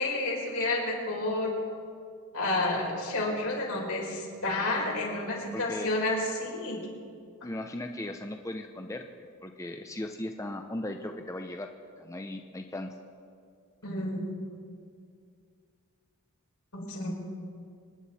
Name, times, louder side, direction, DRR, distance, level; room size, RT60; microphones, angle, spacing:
voice 1, 0.0-1.5 2.3-6.8 13.8-14.2 16.7-17.1, left 2 dB, 80° left, -2 dB, 4.4 m, -30 dB
voice 2, 5.5-5.9 7.4-12.9, left 1 dB, 15° left, 4 dB, 0.6 m, -38 dB
27.0 x 10.0 x 4.2 m, 2.3 s
head